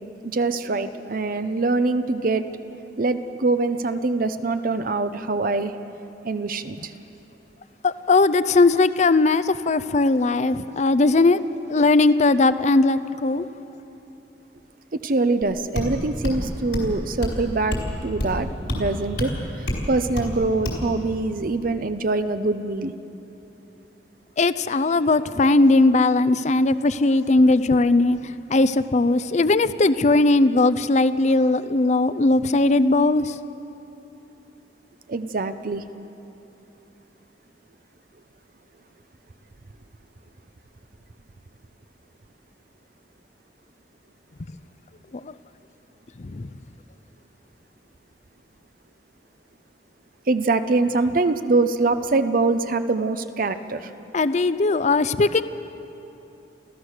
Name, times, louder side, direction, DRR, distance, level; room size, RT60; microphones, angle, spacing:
voice 1, 0.2-2.4 3.0-5.7 6.2-6.9 14.9-19.3 19.6-22.9 35.1-35.8 50.3-53.9, right 3 dB, 55° right, 10 dB, 0.7 m, -24 dB
voice 2, 7.8-11.4 11.7-13.5 24.4-28.2 28.5-33.3 45.2-45.3 46.2-46.5 54.1-55.4, left 2 dB, 40° left, 14 dB, 0.5 m, -19 dB
sound 1, 15.4-15.5 15.7-15.9 16.2-16.4 16.7-16.9 17.2-17.4 17.7-17.9 18.2-18.4 18.7-18.8 19.2-19.3 19.7-19.8 20.2-20.3 20.6-20.8, left 1 dB, 90° left, 4.5 m, -26 dB
28.0 x 14.5 x 6.6 m, 3.0 s
head